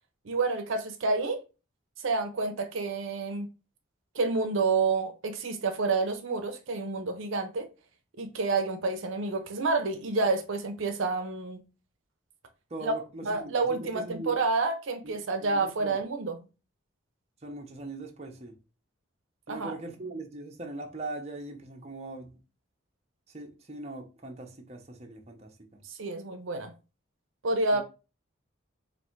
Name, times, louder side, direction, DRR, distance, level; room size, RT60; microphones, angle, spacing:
voice 1, 0.3-1.4 2.0-3.5 4.2-7.7 8.2-11.6 12.8-12.9 13.2-16.4 19.5-19.8 25.9-26.7 27.4-27.8, right 3 dB, 70° right, 0.5 m, -29 dB
voice 2, 12.7-14.4 15.0-15.9 17.4-18.5 19.5-22.4 23.3-25.8 27.7-27.8, right 2 dB, 30° right, 0.6 m, -41 dB
3.3 x 2.6 x 4.4 m
head